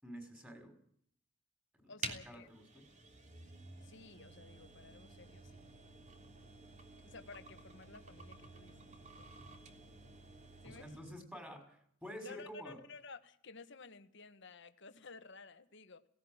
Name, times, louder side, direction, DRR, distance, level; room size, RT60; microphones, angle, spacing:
voice 1, 0.0-0.7 1.7-2.8 10.6-12.8, equal, 10° right, 5 dB, 5.7 m, -50 dB
voice 2, 1.9-2.5 3.8-5.5 7.1-8.8 9.2-9.3 10.6-10.9 12.2-16.1, left 4 dB, 60° left, 10 dB, 1.6 m, -54 dB
sound 1, 2.0-11.1, right 3 dB, 35° right, 3.2 m, -51 dB
18.0 x 17.5 x 9.0 m, 0.64 s
head